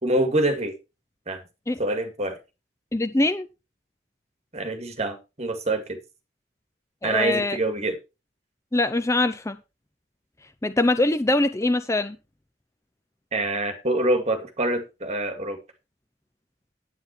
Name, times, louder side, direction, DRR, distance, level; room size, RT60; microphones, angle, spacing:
voice 1, 0.0-0.7 1.3-1.4 1.8-2.4 4.5-6.0 7.0-8.0 13.3-15.6, right 1 dB, 35° right, 2.1 m, -25 dB
voice 2, 2.9-3.5 7.0-7.6 8.7-9.6 10.6-12.2, left 2 dB, 15° left, 0.6 m, -23 dB
9.6 x 9.1 x 4.5 m
head